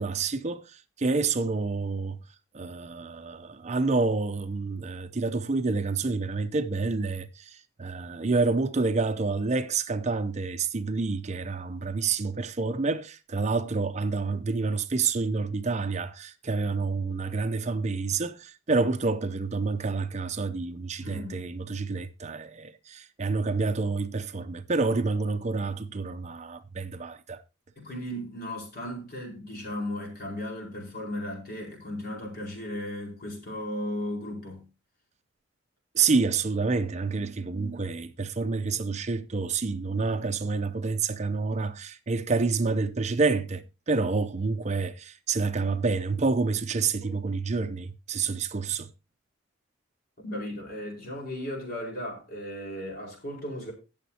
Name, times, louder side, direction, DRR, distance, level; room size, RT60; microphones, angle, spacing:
voice 1, 0.0-2.2 2.5-27.4 35.9-48.9, right 4 dB, 35° right, 0.5 m, -28 dB
voice 2, 21.0-21.5 27.8-34.6 47.0-47.1 50.2-53.7, left 1 dB, 50° left, 4.5 m, -36 dB
17.5 x 7.2 x 2.8 m
head